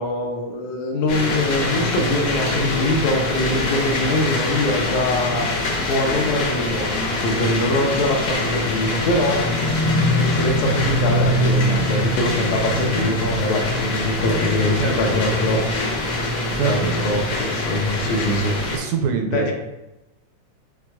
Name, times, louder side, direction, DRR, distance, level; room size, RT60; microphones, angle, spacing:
voice 1, 0.0-5.5 5.9-9.4 10.2-15.6 16.6-18.6 19.3-19.5, left 1 dB, 80° left, 1 dB, 2.1 m, -23 dB
sound 1, 1.1-18.8, left 1 dB, 65° left, 1.3 m, -23 dB
voice 2, 14.8-15.2 16.5-17.0 18.7-19.5, right 6 dB, 80° right, 3 dB, 1.8 m, -24 dB
6.1 x 3.6 x 2.2 m, 0.98 s
omnidirectional pair, 3.4 m